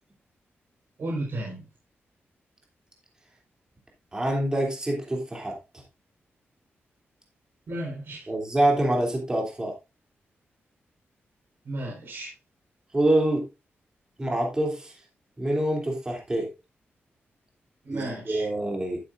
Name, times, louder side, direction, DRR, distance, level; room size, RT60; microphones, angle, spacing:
voice 1, 1.0-1.7 7.7-8.3 11.6-12.3 17.8-18.5, right 1 dB, 60° right, -3 dB, 4.7 m, -33 dB
voice 2, 4.1-5.6 8.3-9.7 12.9-13.5 14.2-14.9 15.4-16.5 17.9-19.0, right 1 dB, 15° right, 0 dB, 3.0 m, -25 dB
12.0 x 8.7 x 2.6 m, 0.26 s
wide cardioid pair, 165°, 4 cm